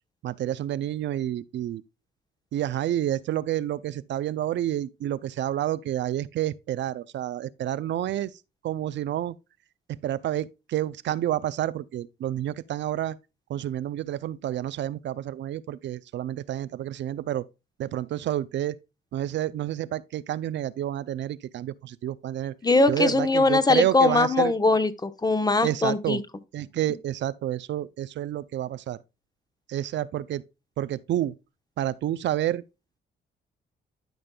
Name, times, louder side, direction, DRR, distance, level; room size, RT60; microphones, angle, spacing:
voice 1, 0.2-1.8 2.5-8.3 8.6-9.3 9.9-13.2 13.5-17.4 17.8-18.8 19.1-22.5 22.9-24.5 25.6-26.2 26.5-29.0 29.7-30.4 30.8-31.3 31.8-32.6, right 12 dB, 65° right, 0.5 m, -29 dB
voice 2, 22.6-26.2, left 3 dB, 20° left, 0.9 m, -21 dB
12.5 x 5.2 x 2.3 m
cardioid pair, 90°, 20 cm